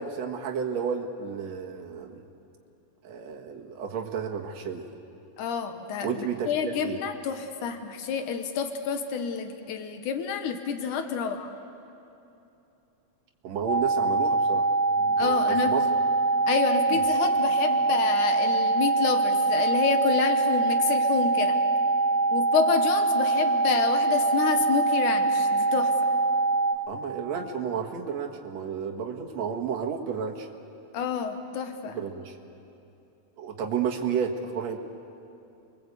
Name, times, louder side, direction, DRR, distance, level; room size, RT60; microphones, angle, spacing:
voice 1, 0.0-2.2 3.0-5.0 6.0-7.0 13.4-14.7 15.0-15.8 16.9-17.0 26.9-30.5 31.8-32.3 33.4-34.8, right 7 dB, 65° right, 2 dB, 2.8 m, -32 dB
voice 2, 5.4-11.5 15.2-15.8 16.5-21.6 22.3-25.9 30.9-32.0, left 6 dB, 85° left, 7 dB, 2.7 m, -28 dB
sound 1, 13.7-26.7, right 3 dB, 30° right, 6.3 m, -24 dB
29.5 x 22.5 x 8.3 m, 2.8 s
omnidirectional pair, 3.4 m